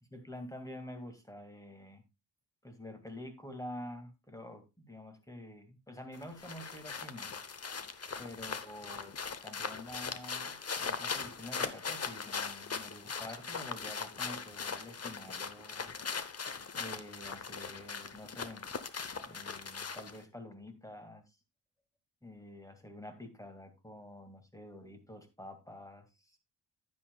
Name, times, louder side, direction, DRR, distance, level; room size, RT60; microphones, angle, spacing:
voice 1, 0.1-2.0 2.6-7.3 8.2-15.9 16.8-18.7 19.3-21.4 22.2-26.4, left 1 dB, 10° left, 7 dB, 2.1 m, -48 dB
sound 1, 6.1-20.2, left 5 dB, 35° left, 0.9 m, -40 dB
10.0 x 10.0 x 2.3 m, 0.24 s
cardioid pair, 85°, 43 cm